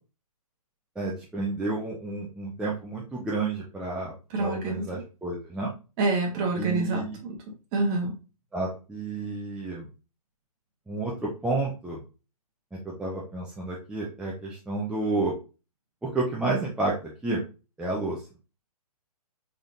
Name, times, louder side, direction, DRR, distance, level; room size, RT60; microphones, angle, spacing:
voice 1, 1.0-5.7 6.6-7.2 8.5-9.9 10.9-12.0 12.8-15.3 16.0-17.4 17.8-18.3, right 2 dB, 5° right, -5 dB, 0.5 m, -31 dB
voice 2, 4.3-4.8 6.0-7.3 7.7-8.1, right 2 dB, 30° right, 1 dB, 1.2 m, -26 dB
3.6 x 3.4 x 2.5 m, 0.31 s
hypercardioid pair, 135°, 19 cm